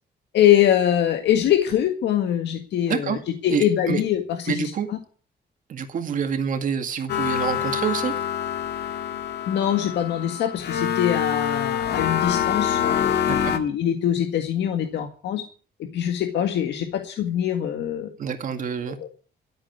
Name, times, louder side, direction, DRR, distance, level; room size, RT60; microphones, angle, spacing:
voice 1, 0.3-5.0 9.5-15.4 15.9-18.1 19.0-19.1, left 10 dB, 90° left, 5 dB, 1.7 m, -23 dB
voice 2, 2.9-3.2 3.5-4.0 4.5-4.9 5.7-8.1 13.3-13.5 18.2-19.0, right 7 dB, 50° right, 6 dB, 2.1 m, -27 dB
sound 1, 7.1-13.6, left 9 dB, 75° left, 1.9 m, -25 dB
13.0 x 8.9 x 9.2 m, 0.41 s
cardioid pair, 175°, 18 cm